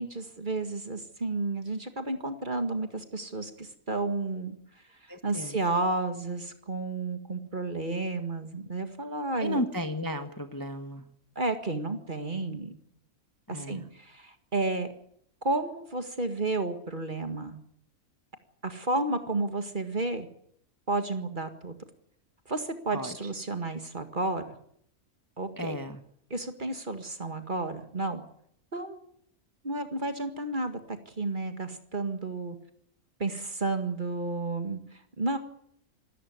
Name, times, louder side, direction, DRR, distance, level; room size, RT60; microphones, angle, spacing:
voice 1, 0.0-4.6 5.2-9.6 11.4-12.7 13.5-14.9 15.4-17.6 18.6-20.3 20.9-21.7 22.5-24.6 25.4-25.8 26.3-28.2 28.7-29.0 29.6-32.6 33.2-34.8 35.2-35.4, right 2 dB, 35° right, 8 dB, 2.0 m, -31 dB
voice 2, 5.1-5.6 9.4-11.0 13.5-13.8 22.9-23.1 25.6-26.0, left 1 dB, 15° left, 8 dB, 1.2 m, -34 dB
26.5 x 13.5 x 9.5 m, 0.70 s
omnidirectional pair, 1.6 m